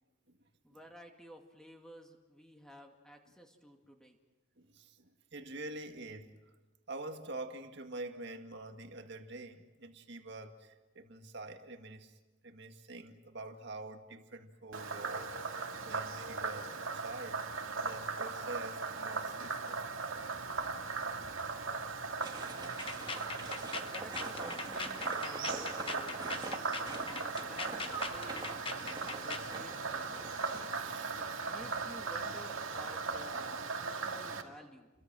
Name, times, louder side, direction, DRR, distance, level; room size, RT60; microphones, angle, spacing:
voice 1, 0.6-4.2 23.8-26.5 27.0-28.5 29.2-30.2 31.2-34.9, equal, 5° left, 2.2 m, -53 dB
voice 2, 4.6-6.4 6.9-12.2 12.4-15.3 15.8-17.4 17.8-19.9 24.5-24.7 26.7-27.3 30.7-31.4, right 2 dB, 55° right, 1.9 m, -47 dB
Frog, 14.7-34.4, right 4 dB, 75° right, 2.2 m, -38 dB
sound 1, 22.2-30.7, right 3 dB, 20° right, 2.0 m, -45 dB
sound 2, 22.7-29.5, left 4 dB, 25° left, 1.0 m, -42 dB
29.5 x 22.5 x 6.2 m
head